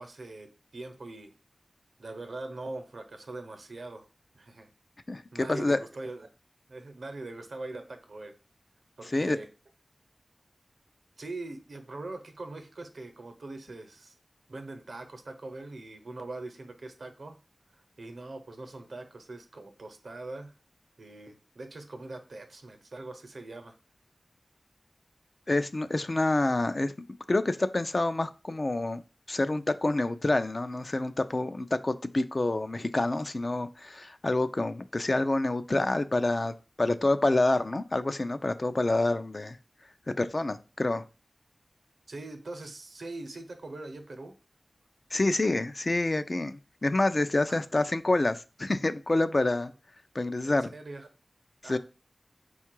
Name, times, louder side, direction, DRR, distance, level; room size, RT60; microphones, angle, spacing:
voice 1, 0.0-1.3 2.0-4.1 4.3-4.7 5.3-6.3 6.7-8.3 9.0-9.5 11.2-14.1 14.5-17.4 17.7-20.5 21.0-23.8 42.1-44.3 47.5-47.6 47.9-48.0 50.4-51.1 51.6-51.8, right 2 dB, 90° right, 0.8 m, -42 dB
voice 2, 5.1-5.8 9.1-9.4 25.5-26.9 27.3-29.0 29.3-39.6 40.2-41.0 45.1-49.7 50.1-50.7 51.6-51.8, left 2 dB, 50° left, 0.4 m, -27 dB
4.6 x 2.3 x 4.4 m
wide cardioid pair, 60°, 0 cm